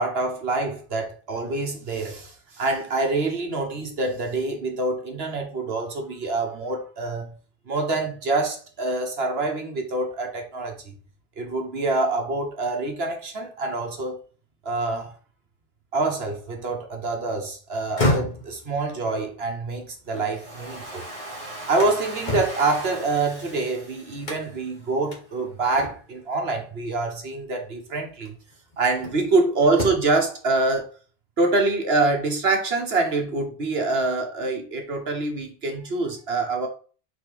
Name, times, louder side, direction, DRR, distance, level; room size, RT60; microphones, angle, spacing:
voice 1, 0.0-7.3 7.7-10.9 11.4-14.2 14.6-15.1 15.9-21.1 21.7-28.3 28.8-30.9 31.4-36.7, right 3 dB, 75° right, 1.6 m, -25 dB
sound 1, 17.7-20.9 21.3-23.7 24.2-24.7 25.1-25.2 25.8-26.3 27.5-27.6 28.2-29.4 29.7-30.3, left 1 dB, 45° left, 1.6 m, -31 dB
Domestic sounds home sounds, 20.1-25.1, right 1 dB, 35° right, 1.8 m, -39 dB
4.6 x 4.4 x 4.9 m
omnidirectional pair, 1.0 m